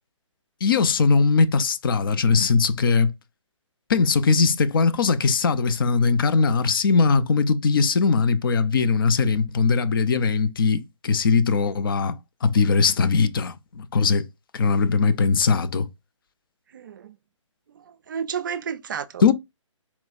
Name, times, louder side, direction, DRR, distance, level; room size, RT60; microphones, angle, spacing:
voice 1, 0.6-3.1 3.9-14.2 14.5-15.9 19.2-19.3, left 4 dB, 45° left, 0.6 m, -20 dB
voice 2, 16.7-17.2 17.8-19.3, right 7 dB, 40° right, 0.4 m, -32 dB
4.2 x 2.3 x 4.1 m
figure-of-eight pair, 145°, 16 cm